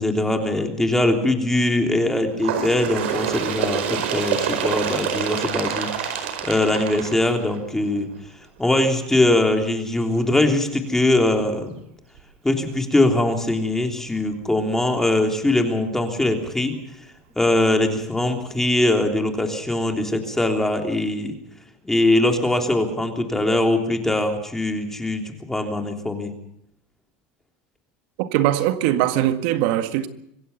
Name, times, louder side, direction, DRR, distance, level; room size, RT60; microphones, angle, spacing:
voice 1, 0.0-8.1 8.6-11.7 12.4-16.7 17.4-21.3 21.8-26.3, left 1 dB, 5° left, 3.3 m, -21 dB
Bird, 2.4-7.8 8.7-8.8 9.2-9.3 10.2-10.3 11.2-11.3 12.2-12.3, right 8 dB, 85° right, 4.8 m, -27 dB
voice 2, 28.2-30.1, right 12 dB, 65° right, 1.8 m, -21 dB
25.5 x 15.5 x 6.9 m
supercardioid pair, 130°, 6 cm